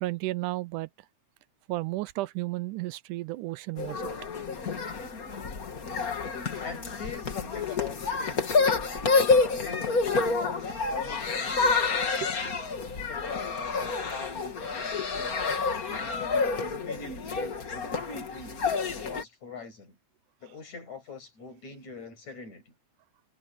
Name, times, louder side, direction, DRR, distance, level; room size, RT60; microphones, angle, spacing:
voice 1, 0.0-0.9 1.7-4.0, right 19 dB, 85° right, 2.1 m, -33 dB
sound 1, 3.8-19.2, left 4 dB, 35° left, 1.7 m, -28 dB
voice 2, 6.6-8.8 9.3-12.0 12.9-15.5 16.1-20.0 20.4-22.7, left 5 dB, 60° left, 7.6 m, -44 dB
omnidirectional pair, 3.6 m